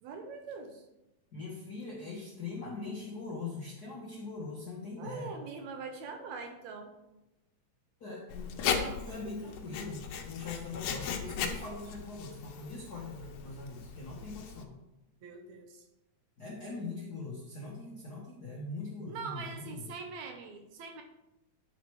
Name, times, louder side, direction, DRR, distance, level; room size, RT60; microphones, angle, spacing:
voice 1, 0.0-0.8 5.0-6.9 15.2-15.8 19.1-21.0, right 4 dB, 70° right, 4 dB, 2.0 m, -43 dB
voice 2, 1.3-5.3 8.0-14.7 16.4-19.9, left 3 dB, 60° left, -4 dB, 1.0 m, -41 dB
Writing, 8.3-14.6, left 7 dB, 75° left, 2.1 m, -37 dB
10.0 x 4.3 x 4.7 m, 0.93 s
omnidirectional pair, 3.6 m